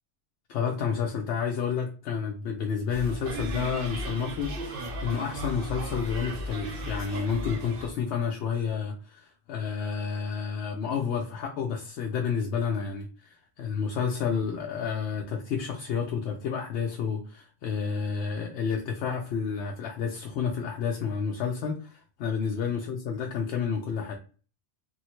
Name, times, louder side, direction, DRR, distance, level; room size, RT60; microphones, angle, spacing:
voice 1, 0.5-24.2, left 6 dB, 80° left, 1 dB, 0.9 m, -30 dB
sound 1, 2.9-7.9, equal, 60° right, 0.8 m, -35 dB
3.4 x 2.1 x 3.0 m, 0.37 s
omnidirectional pair, 1.1 m